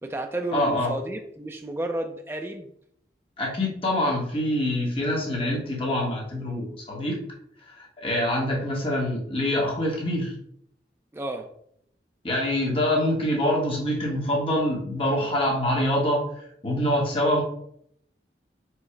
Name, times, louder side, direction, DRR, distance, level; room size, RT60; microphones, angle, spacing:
voice 1, 0.0-2.7 11.1-11.5, right 1 dB, 15° right, 4 dB, 0.4 m, -32 dB
voice 2, 0.5-0.9 3.4-7.2 7.7-10.3 12.2-16.3 16.6-17.4, left 1 dB, 30° left, -2 dB, 0.9 m, -25 dB
4.6 x 2.0 x 4.5 m, 0.70 s
head